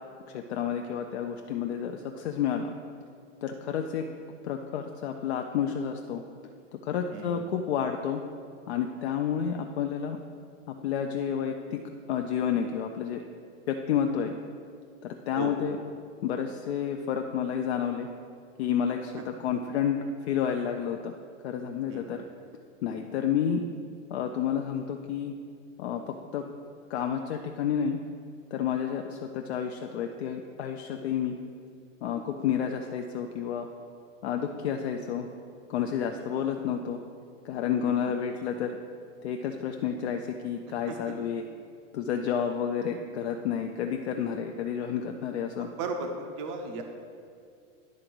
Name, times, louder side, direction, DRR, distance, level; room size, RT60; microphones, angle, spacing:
voice 1, 0.3-2.7 3.4-4.1 4.4-6.2 6.8-8.2 8.7-10.2 10.7-11.8 12.1-13.2 13.7-14.4 15.0-15.8 16.2-18.1 18.6-20.0 20.3-21.1 21.4-22.2 22.8-23.6 24.1-25.3 25.8-26.4 26.9-28.0 28.5-31.4 32.0-33.7 34.2-35.3 35.7-37.0 37.4-38.8 39.2-41.4 41.9-45.7, left 8 dB, 55° left, 4 dB, 0.6 m, -30 dB
voice 2, 21.9-22.3 36.3-36.5 37.8-38.2 40.9-41.1 45.6-46.8, right 3 dB, 25° right, 4 dB, 0.5 m, -36 dB
11.0 x 3.9 x 6.0 m, 2.3 s
supercardioid pair, 170°, 39 cm